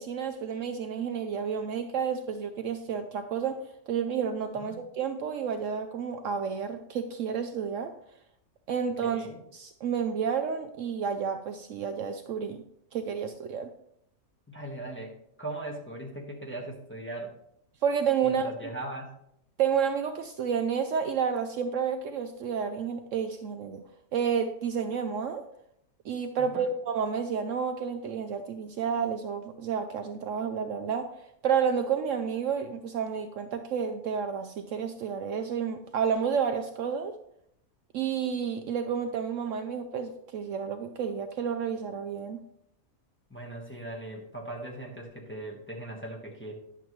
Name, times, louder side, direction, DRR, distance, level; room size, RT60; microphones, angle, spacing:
voice 1, 0.0-3.6 3.9-7.9 8.7-9.3 9.5-12.6 12.9-13.7 17.8-18.5 19.6-23.8 24.1-25.4 26.0-31.1 31.4-37.1 37.9-42.4, right 7 dB, 65° right, 6 dB, 0.9 m, -30 dB
voice 2, 9.0-9.4 14.5-17.3 18.2-19.1 26.4-26.7 43.3-46.5, right 1 dB, 10° left, -2 dB, 1.1 m, -39 dB
10.0 x 6.9 x 3.1 m, 0.73 s
omnidirectional pair, 1.5 m